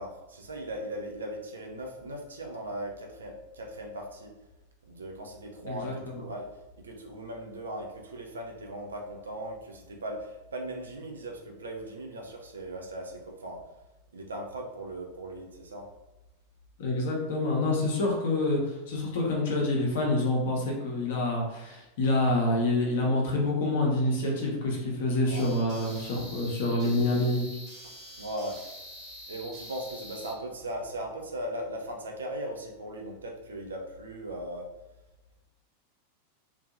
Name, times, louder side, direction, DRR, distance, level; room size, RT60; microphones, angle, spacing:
voice 1, 0.0-4.4 4.9-6.5 6.8-13.6 14.1-15.9 25.3-25.5 28.2-28.6 29.3-34.7, right 1 dB, 70° right, 2 dB, 0.4 m, -38 dB
voice 2, 16.8-18.6 18.9-27.4, left 2 dB, 55° left, -2 dB, 0.7 m, -27 dB
sound 1, 25.3-30.3, equal, 30° right, 0.7 m, -45 dB
2.6 x 2.2 x 2.4 m, 0.99 s
figure-of-eight pair, 90°, 0 cm